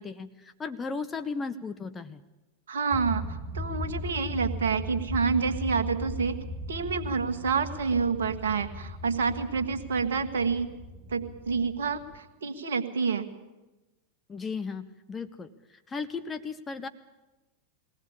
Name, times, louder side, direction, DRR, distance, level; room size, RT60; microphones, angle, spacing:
voice 1, 0.0-2.2 14.3-16.9, left 4 dB, 15° left, 9 dB, 0.8 m, -36 dB
voice 2, 2.7-6.4 6.7-10.7 11.1-13.3, right 5 dB, 65° right, 10 dB, 1.6 m, -28 dB
sound 1, 2.9-12.2, equal, 40° right, 2.1 m, -38 dB
21.0 x 17.5 x 8.7 m, 1.1 s
figure-of-eight pair, 90°, 0 cm